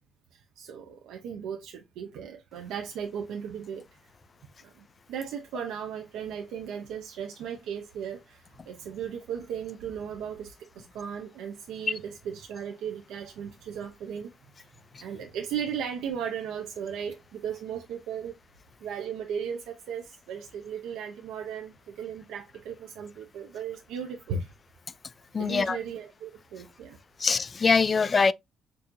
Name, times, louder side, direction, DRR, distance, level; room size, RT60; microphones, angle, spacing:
voice 1, 0.3-3.8 4.6-4.7 5.1-14.3 15.0-18.4 18.8-24.5 25.4-27.0, right 7 dB, 90° right, 0.7 m, -36 dB
voice 2, 25.3-25.8 27.2-28.3, left 5 dB, 35° left, 0.4 m, -23 dB
6.7 x 2.7 x 2.6 m
cardioid pair, 90°, 0 cm